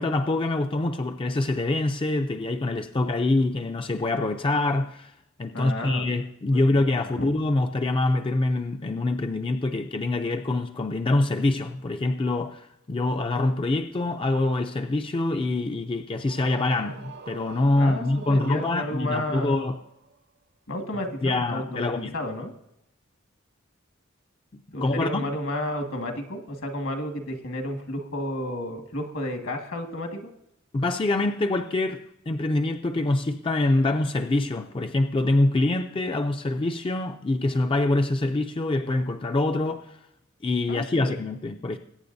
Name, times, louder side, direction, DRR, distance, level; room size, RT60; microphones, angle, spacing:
voice 1, 0.0-5.1 5.4-19.8 21.2-22.1 24.5-25.3 30.7-40.0 40.4-41.8, left 2 dB, 25° left, 0.4 m, -25 dB
voice 2, 5.5-6.0 6.5-7.3 17.7-19.6 20.7-22.5 24.7-30.3 40.7-41.1, left 1 dB, 70° left, 1.8 m, -32 dB
sound 1, 16.2-20.2, right 4 dB, 55° right, 0.7 m, -45 dB
21.5 x 9.1 x 2.7 m
head